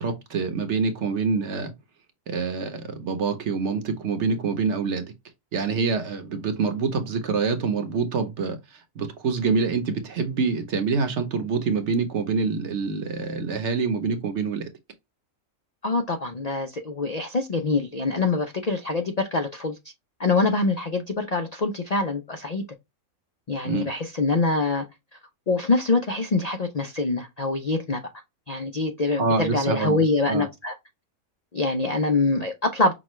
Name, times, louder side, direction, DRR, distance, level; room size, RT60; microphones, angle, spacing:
voice 1, 0.0-1.7 2.3-5.0 5.5-8.6 9.0-14.6 23.6-23.9 29.2-30.4, right 4 dB, 55° right, 1.0 m, -26 dB
voice 2, 15.8-19.8 20.2-22.6 23.5-24.8 25.5-28.0 28.5-30.7 31.5-32.9, left 3 dB, 85° left, 0.3 m, -24 dB
6.0 x 2.3 x 3.0 m
omnidirectional pair, 1.6 m